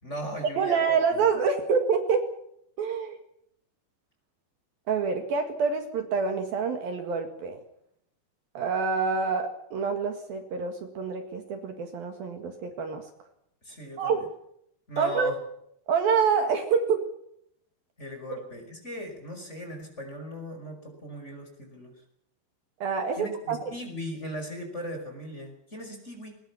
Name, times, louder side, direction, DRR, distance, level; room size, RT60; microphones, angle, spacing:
voice 1, 0.0-1.3 13.6-14.2 14.9-15.4 18.0-21.9 23.2-26.4, equal, 15° left, 4 dB, 5.4 m, -38 dB
voice 2, 0.6-2.3 2.8-3.2 4.9-7.6 8.6-13.1 14.0-14.3 15.0-15.4 15.9-17.1 22.8-23.7, right 5 dB, 60° right, 5 dB, 3.4 m, -27 dB
21.5 x 20.5 x 7.2 m, 0.72 s
omnidirectional pair, 5.1 m